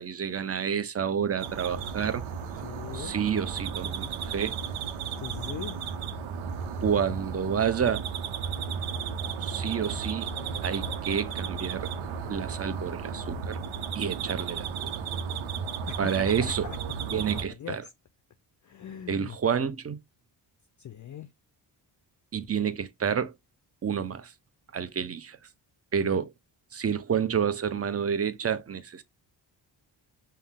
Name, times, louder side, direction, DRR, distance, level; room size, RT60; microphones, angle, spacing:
voice 1, 0.0-2.2 2.9-4.6 6.8-8.1 9.4-10.3 10.6-11.9 12.3-13.6 13.9-14.9 16.0-16.7 17.1-17.8 19.1-20.0 22.3-23.3 23.8-24.3 24.7-25.4 25.9-26.3 26.7-29.0, right 7 dB, 30° right, 0.7 m, -29 dB
sound 1, 1.4-17.4, right 6 dB, 85° right, 0.8 m, -34 dB
voice 2, 2.6-3.1 5.2-5.8 15.9-16.8 17.0-17.9 18.6-19.4 20.8-21.3, left 10 dB, 40° left, 0.5 m, -41 dB
5.5 x 2.1 x 3.6 m
cardioid pair, 60°, 46 cm